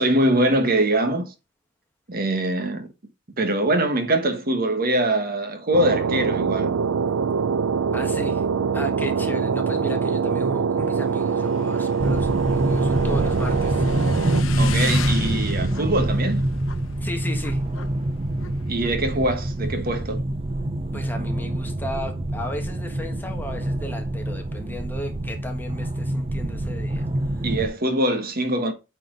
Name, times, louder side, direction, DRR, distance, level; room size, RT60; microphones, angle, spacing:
voice 1, 0.0-1.3 2.1-2.9 3.4-6.7 14.6-16.5 18.7-20.2 27.4-28.7, right 1 dB, 50° right, 1.4 m, -23 dB
sound 1, 5.7-14.4, right 5 dB, 90° right, 0.4 m, -24 dB
voice 2, 7.9-8.4 8.7-13.8 17.0-17.6 20.9-27.5, left 1 dB, 10° left, 1.4 m, -35 dB
Motorcycle / Engine, 10.8-20.0, left 5 dB, 80° left, 0.8 m, -37 dB
sound 2, 12.0-27.7, right 1 dB, 30° right, 0.6 m, -26 dB
9.0 x 4.4 x 3.8 m
head